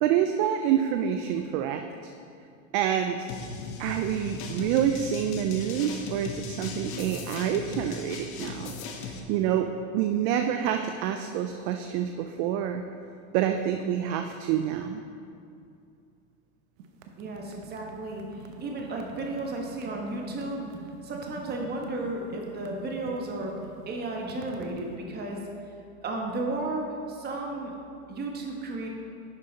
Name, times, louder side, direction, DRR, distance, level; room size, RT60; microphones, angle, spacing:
voice 1, 0.0-2.1 2.7-3.3 3.8-8.7 9.0-9.7 9.9-12.8 13.3-15.0, right 9 dB, 40° right, 6 dB, 0.4 m, -27 dB
sound 1, 3.3-9.2, left 4 dB, 40° left, 1.1 m, -38 dB
sound 2, 16.8-24.9, right 5 dB, 70° right, 1.0 m, -45 dB
voice 2, 17.2-20.6 21.0-23.5 23.9-25.4 26.0-27.7 28.1-28.9, right 2 dB, 25° right, 0 dB, 1.3 m, -33 dB
10.5 x 5.6 x 4.1 m, 2.5 s
supercardioid pair, 130°, 40 cm